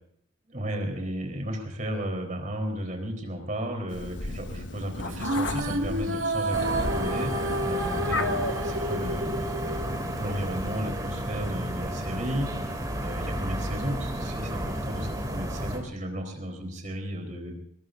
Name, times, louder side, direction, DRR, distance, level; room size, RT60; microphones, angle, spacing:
voice 1, 0.5-7.3 7.6-9.2 9.6-12.5 13.0-17.6, equal, 40° right, 3 dB, 4.0 m, -34 dB
Meow, 3.9-10.8, left 2 dB, 60° left, 1.2 m, -36 dB
sound 1, 5.1-10.6, right 1 dB, 90° right, 2.1 m, -30 dB
sound 2, 6.5-15.8, right 1 dB, 20° right, 2.7 m, -32 dB
21.5 x 21.0 x 2.7 m, 0.65 s
head